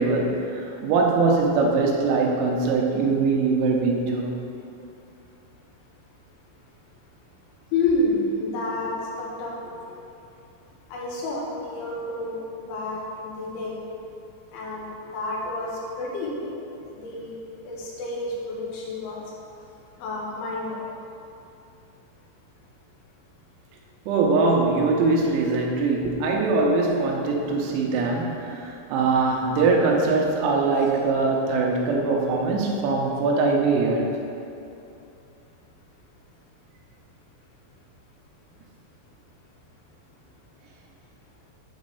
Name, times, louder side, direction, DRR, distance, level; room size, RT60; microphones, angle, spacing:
voice 1, 0.0-4.3 24.1-34.1, right 3 dB, 85° right, 0 dB, 3.6 m, -22 dB
voice 2, 7.7-8.9 9.2-9.5 10.9-13.8 14.5-15.7 16.0-16.5 17.0-17.3 17.6-19.2 20.0-20.8, left 2 dB, 75° left, -4 dB, 3.1 m, -29 dB
9.2 x 3.1 x 6.7 m, 2.7 s
omnidirectional pair, 5.9 m